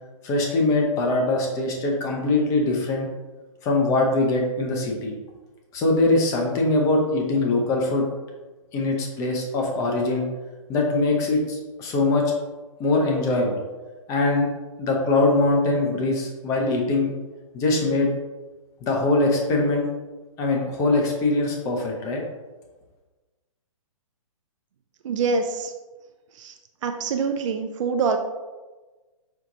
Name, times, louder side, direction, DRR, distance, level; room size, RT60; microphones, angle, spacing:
voice 1, 0.2-3.1 3.6-5.1 5.7-8.1 8.7-10.3 10.7-12.3 12.8-13.6 14.1-14.5 14.8-17.1 17.5-18.1 18.8-19.9 20.4-22.2, left 2 dB, 20° left, 1 dB, 0.6 m, -22 dB
voice 2, 25.0-25.7 26.3-26.6 26.8-28.2, right 5 dB, 65° right, 5 dB, 0.4 m, -25 dB
4.5 x 2.4 x 3.8 m, 1.2 s
hypercardioid pair, 150°, 18 cm